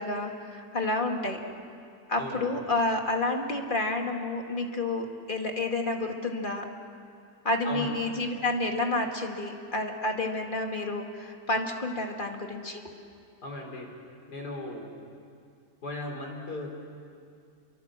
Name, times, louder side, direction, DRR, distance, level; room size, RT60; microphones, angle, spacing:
voice 1, 0.0-1.4 2.1-6.7 7.4-12.8, left 2 dB, 30° left, 3 dB, 2.2 m, -30 dB
voice 2, 2.2-2.6 7.6-7.9 13.4-13.9 14.3-14.9 15.8-16.7, left 2 dB, 70° left, 2 dB, 4.4 m, -37 dB
28.5 x 24.0 x 7.5 m, 2.4 s
omnidirectional pair, 1.8 m